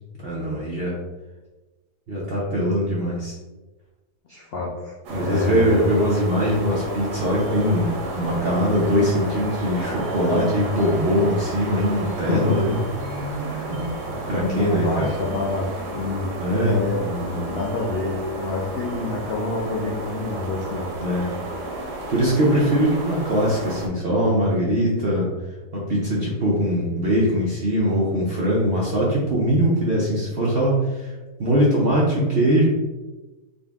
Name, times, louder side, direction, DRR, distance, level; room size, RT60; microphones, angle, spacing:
voice 1, 0.2-1.0 2.1-3.3 5.1-12.7 13.6-15.1 16.4-17.6 21.0-21.3 22.1-25.3 25.7-32.6, equal, 55° right, -5 dB, 0.7 m, -22 dB
voice 2, 4.3-5.9 12.3-12.8 13.4-13.8 14.3-20.9, left 2 dB, 75° left, -2 dB, 0.5 m, -28 dB
sound 1, 5.0-23.9, right 2 dB, 80° right, 1.3 m, -32 dB
3.9 x 2.6 x 3.4 m, 1.2 s
omnidirectional pair, 1.7 m